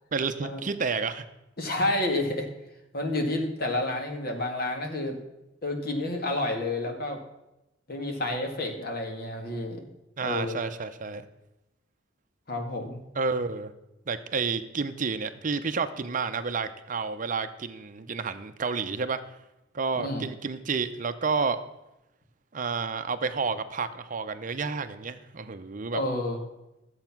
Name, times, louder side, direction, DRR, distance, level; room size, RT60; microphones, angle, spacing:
voice 1, 0.1-1.2 10.2-11.3 13.2-13.7 14.1-19.2 19.7-21.6 22.5-26.0, right 4 dB, 40° right, 10 dB, 0.6 m, -30 dB
voice 2, 1.6-2.5 2.9-5.2 5.6-7.2 7.9-9.8 10.2-10.7 12.5-13.0 20.0-20.3 25.9-26.4, left 1 dB, 50° left, 3 dB, 1.9 m, -30 dB
12.5 x 7.9 x 5.9 m, 0.94 s
head